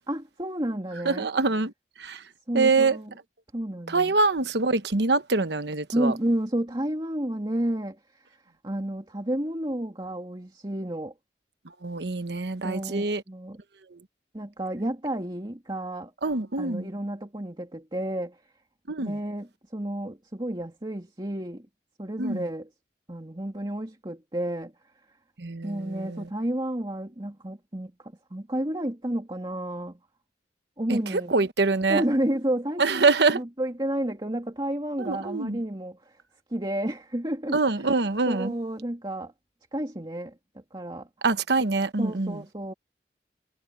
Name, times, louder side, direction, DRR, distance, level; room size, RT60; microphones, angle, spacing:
voice 1, 0.1-1.2 2.5-3.1 3.5-4.1 5.9-8.2 8.6-11.1 12.6-13.6 14.3-16.1 16.6-18.4 19.0-21.7 22.0-22.7 23.1-24.7 25.6-30.0 30.8-31.3 31.9-36.2 36.5-37.6 38.3-39.3 39.7-40.3 40.7-41.1 42.0-42.7, right 1 dB, 25° right, 2.3 m, -31 dB
voice 2, 1.0-1.7 2.0-2.2 2.5-3.0 3.9-6.1 11.8-13.2 13.9-14.0 16.2-16.9 18.9-19.2 22.2-22.5 25.4-26.3 30.9-32.0 32.8-33.4 35.0-35.6 37.5-38.5 41.2-42.4, right 3 dB, 70° right, 1.1 m, -25 dB
head